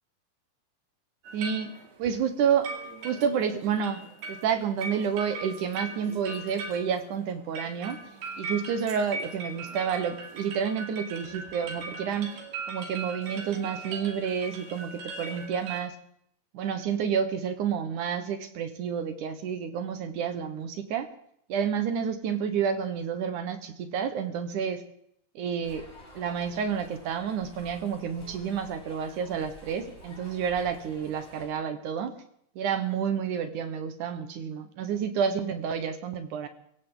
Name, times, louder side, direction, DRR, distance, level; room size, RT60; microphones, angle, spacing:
sound 1, 1.2-15.8, right 3 dB, 85° right, 4.6 m, -40 dB
voice 1, 1.3-2.7 3.0-4.0 4.3-8.0 8.4-12.3 12.7-16.0 16.5-21.1 21.5-24.8 25.4-25.9 26.2-32.1 32.6-36.5, right 7 dB, 65° right, 9 dB, 2.3 m, -29 dB
sound 2, 25.6-31.5, equal, 10° left, 6.3 m, -50 dB
23.0 x 16.0 x 3.8 m, 0.69 s
omnidirectional pair, 4.4 m